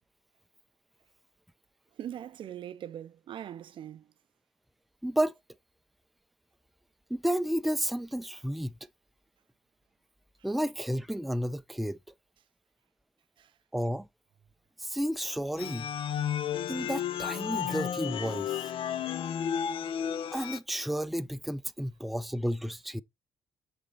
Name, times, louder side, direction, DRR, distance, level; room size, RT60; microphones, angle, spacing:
voice 1, 2.0-4.0 13.4-13.5, right 10 dB, 60° right, 0.4 m, -41 dB
voice 2, 5.0-5.3 7.1-8.8 10.4-12.0 13.7-14.1 14.8-15.9 16.7-18.7 20.3-23.0, equal, ahead, 0.4 m, -31 dB
sound 1, 15.6-20.6, left 9 dB, 65° left, 0.5 m, -33 dB
6.6 x 4.0 x 3.9 m
cardioid pair, 85°, 10 cm